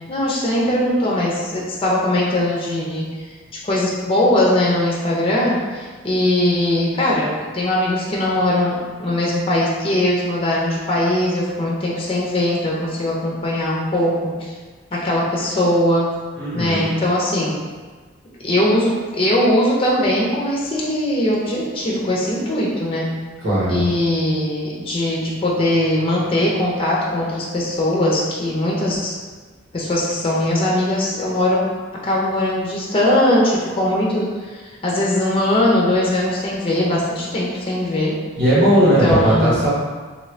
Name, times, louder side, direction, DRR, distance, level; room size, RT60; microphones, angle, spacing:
voice 1, 0.1-3.1 3.6-14.5 14.9-16.1 16.5-17.6 18.4-23.1 23.7-29.1 29.7-31.7 32.0-38.2 39.0-39.7, left 1 dB, 30° left, -4 dB, 0.5 m, -20 dB
voice 2, 16.4-16.9 23.4-23.8 38.4-39.7, right 1 dB, 80° right, -9 dB, 1.5 m, -17 dB
3.0 x 2.6 x 3.1 m, 1.4 s
head